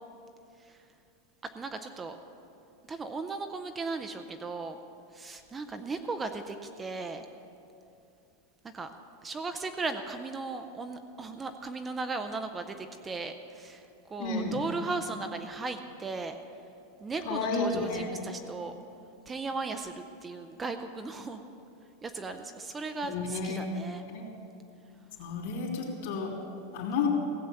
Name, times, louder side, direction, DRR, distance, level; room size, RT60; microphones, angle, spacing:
voice 1, 1.5-2.2 2.9-4.8 5.1-7.3 8.7-8.9 9.2-16.4 17.0-18.7 19.3-21.4 22.0-24.0, right 3 dB, 10° right, 7 dB, 0.4 m, -37 dB
voice 2, 14.2-14.6 17.3-18.0 23.1-23.6 24.1-24.2 25.2-26.3 26.7-27.1, left 4 dB, 60° left, -2 dB, 3.0 m, -31 dB
16.0 x 7.7 x 7.0 m, 2.6 s
supercardioid pair, 170°, 0 cm